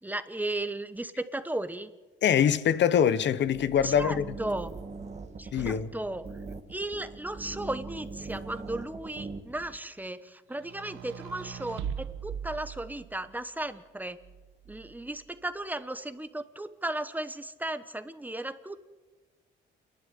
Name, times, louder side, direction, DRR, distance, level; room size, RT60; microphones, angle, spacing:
voice 1, 0.0-1.9 3.8-4.7 5.4-6.3 6.7-14.2 14.7-18.8, right 1 dB, 10° right, 1.1 m, -35 dB
voice 2, 2.2-4.2 5.5-5.9, left 8 dB, 65° left, 1.0 m, -24 dB
sound 1, 3.5-9.8, right 3 dB, 35° right, 2.1 m, -41 dB
sound 2, 10.6-13.3 14.2-15.2, right 8 dB, 90° right, 1.2 m, -40 dB
28.0 x 11.5 x 8.8 m
cardioid pair, 90°, 20 cm